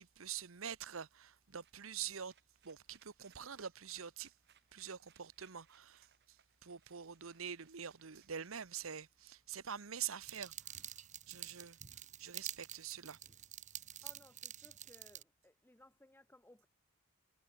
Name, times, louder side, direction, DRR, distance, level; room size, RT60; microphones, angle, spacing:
voice 1, 0.0-2.3 2.6-4.3 4.7-6.1 6.6-10.9 11.3-11.8 12.2-13.2, right 8 dB, 70° right, 1.0 m, -45 dB
sound 1, 1.3-9.4, right 8 dB, 55° right, 7.1 m, -72 dB
sound 2, 10.2-15.2, right 10 dB, 35° right, 1.5 m, -49 dB
voice 2, 14.0-16.7, left 1 dB, 10° left, 1.4 m, -63 dB
head